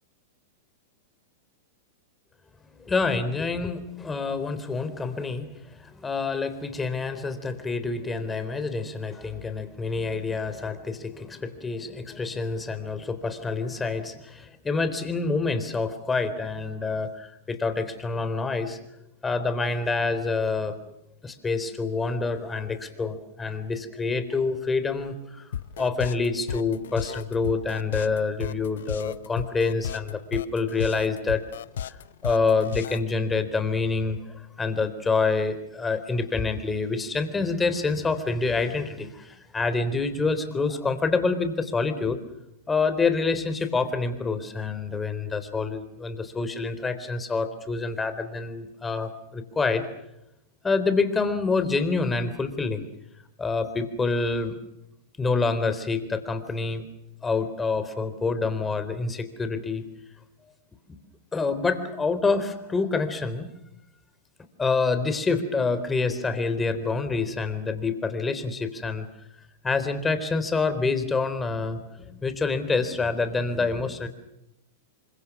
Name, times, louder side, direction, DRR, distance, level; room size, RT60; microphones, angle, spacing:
voice 1, 2.9-18.8 19.2-21.0 21.2-31.4 31.9-32.0 32.2-42.2 42.7-49.9 50.6-52.8 53.4-54.6 55.2-56.8 57.2-59.9 61.3-63.5 64.6-69.1 69.6-74.1, left 4 dB, 15° left, 10 dB, 3.8 m, -27 dB
sound 1, 25.5-33.1, left 9 dB, 75° left, 1.1 m, -34 dB
29.5 x 25.0 x 6.2 m, 0.86 s
hypercardioid pair, 115°, 0 cm